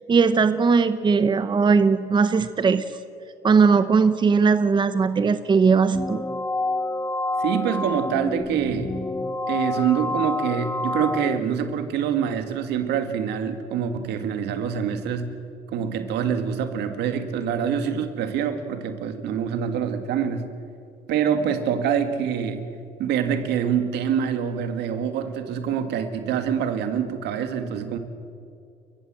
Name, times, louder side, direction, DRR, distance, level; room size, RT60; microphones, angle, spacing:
voice 1, 0.1-2.8 3.4-6.2, right 5 dB, 25° right, 11 dB, 0.9 m, -19 dB
sound 1, 5.9-11.4, left 2 dB, 15° left, 0.8 m, -28 dB
voice 2, 7.4-9.0 9.5-15.3 15.7-20.5 21.1-22.7 23.0-28.0, right 8 dB, 80° right, 8 dB, 2.1 m, -25 dB
29.5 x 15.0 x 7.7 m, 2.4 s
cardioid pair, 110°, 17 cm